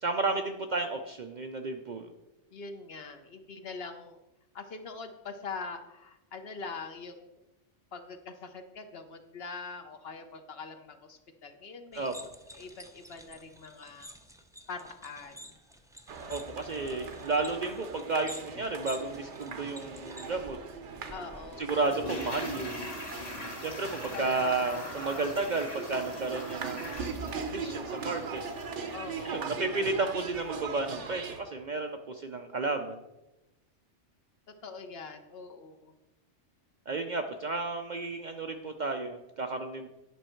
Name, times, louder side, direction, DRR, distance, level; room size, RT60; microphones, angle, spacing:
voice 1, 0.0-2.1 11.9-12.3 16.3-20.6 21.6-22.9 23.6-28.4 29.2-33.0 36.9-39.9, right 3 dB, 50° right, 5 dB, 0.5 m, -32 dB
voice 2, 2.5-4.2 4.5-7.3 7.9-12.1 12.5-14.1 14.7-15.5 21.1-21.7 24.1-25.2 28.9-29.5 34.5-35.9, left 4 dB, 60° left, 7 dB, 1.0 m, -43 dB
sound 1, 11.9-21.6, equal, 5° right, 0.3 m, -50 dB
sound 2, 16.1-31.4, right 5 dB, 70° right, 1.1 m, -40 dB
Toilet flush, 21.8-28.8 29.1-29.2, left 1 dB, 80° left, 2.3 m, -42 dB
10.0 x 5.4 x 4.4 m, 0.97 s
omnidirectional pair, 1.2 m